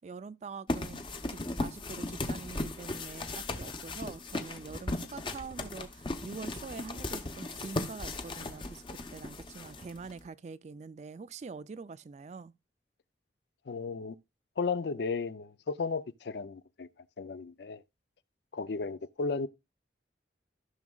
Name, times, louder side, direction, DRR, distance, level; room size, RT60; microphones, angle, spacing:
voice 1, 0.0-12.5, right 4 dB, 40° right, 0.3 m, -45 dB
sound 1, 0.7-10.2, left 2 dB, 30° left, 0.8 m, -37 dB
voice 2, 13.7-14.2 14.6-16.9 17.2-17.8 18.5-19.5, left 4 dB, 65° left, 0.5 m, -34 dB
14.0 x 6.1 x 2.3 m
head